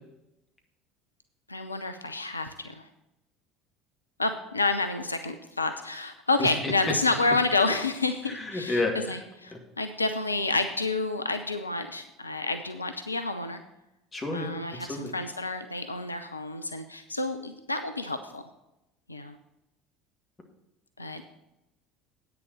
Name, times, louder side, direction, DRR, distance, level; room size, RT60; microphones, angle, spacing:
voice 1, 1.5-2.9 4.2-13.6 14.3-18.5 19.1-19.4 21.0-21.2, left 3 dB, 90° left, 8 dB, 0.5 m, -29 dB
voice 2, 6.4-6.7 8.3-9.2 9.5-9.6 14.1-15.1, left 2 dB, 25° left, 2 dB, 2.3 m, -31 dB
9.1 x 6.9 x 6.3 m, 0.90 s
figure-of-eight pair, 65°, 0 cm